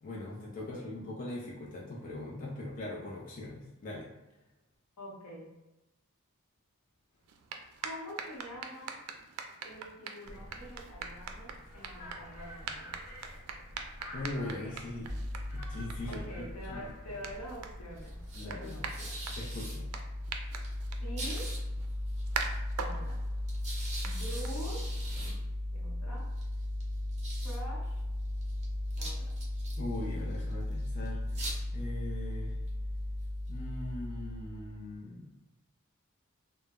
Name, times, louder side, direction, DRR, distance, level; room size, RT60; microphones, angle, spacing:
voice 1, 0.0-4.1 14.1-15.2 15.5-16.2 16.7-16.9 18.3-18.8 19.4-19.8 29.8-32.6 33.5-35.3, left 1 dB, 35° left, -4 dB, 0.4 m, -40 dB
voice 2, 0.6-0.9 5.0-5.5 7.8-9.0 9.6-12.9 16.0-19.1 21.0-21.5 22.8-23.2 24.0-24.9 25.7-26.2 27.4-28.0 28.9-29.2, equal, 85° left, -3 dB, 0.8 m, -45 dB
sound 1, 7.2-25.0, right 5 dB, 80° right, 0.3 m, -44 dB
sound 2, 10.2-18.3, equal, 55° left, 0.9 m, -48 dB
sound 3, 15.1-35.0, left 1 dB, 30° right, 0.6 m, -36 dB
2.0 x 2.0 x 3.5 m, 1.0 s
head